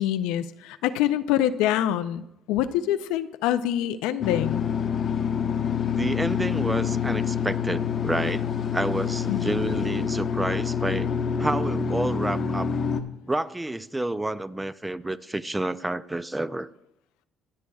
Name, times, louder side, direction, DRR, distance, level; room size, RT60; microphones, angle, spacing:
voice 1, 0.0-4.7 9.3-9.5, left 12 dB, 90° left, 0.5 m, -25 dB
sound 1, 4.2-13.0, left 7 dB, 50° left, 0.9 m, -27 dB
voice 2, 6.0-8.4 8.7-11.1 11.4-12.7 13.2-16.7, right 2 dB, 10° right, 0.4 m, -29 dB
24.0 x 8.3 x 2.4 m
cardioid pair, 95°, 0 cm